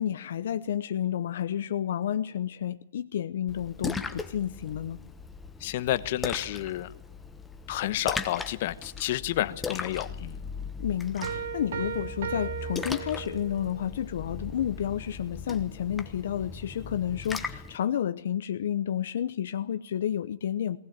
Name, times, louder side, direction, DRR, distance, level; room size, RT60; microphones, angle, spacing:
voice 1, 0.0-5.0 10.8-20.8, left 10 dB, 60° left, 11 dB, 0.8 m, -31 dB
Splash splatter, 3.5-17.8, left 4 dB, 5° left, 1.1 m, -38 dB
voice 2, 5.6-6.9 7.7-10.4, left 14 dB, 45° left, 13 dB, 1.1 m, -30 dB
sound 1, 11.2-13.7, right 8 dB, 60° right, 2.0 m, -36 dB
19.5 x 19.5 x 8.9 m, 0.69 s
hypercardioid pair, 170°, 0 cm